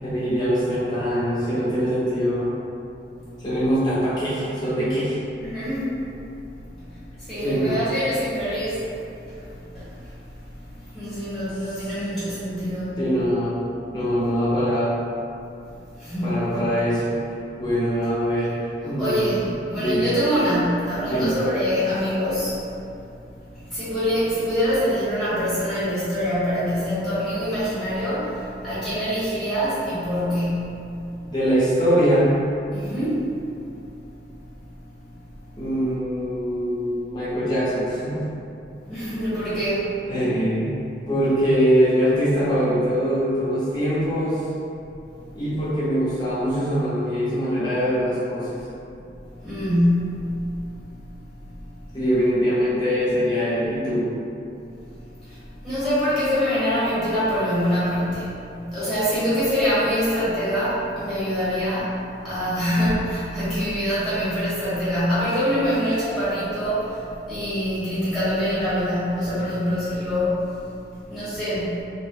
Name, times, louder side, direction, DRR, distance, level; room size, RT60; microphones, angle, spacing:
voice 1, 0.0-2.5 3.4-5.2 7.4-7.8 13.0-13.5 13.9-14.9 16.2-17.1 17.5-18.6 18.8-19.3 19.8-20.0 21.0-21.3 31.3-32.3 35.6-38.2 40.1-44.4 45.3-48.5 51.9-54.0, equal, 25° left, -11 dB, 0.9 m, -22 dB
voice 2, 5.3-6.0 6.8-9.4 9.7-10.1 10.6-13.0 16.0-16.6 19.0-22.5 22.8-22.9 23.5-31.0 32.7-33.3 38.9-39.9 49.4-50.4 51.0-51.1 55.2-58.4 58.7-62.0 62.2-70.4 71.1-71.8, equal, ahead, -16 dB, 1.4 m, -25 dB
3.0 x 2.3 x 3.0 m, 2.6 s
head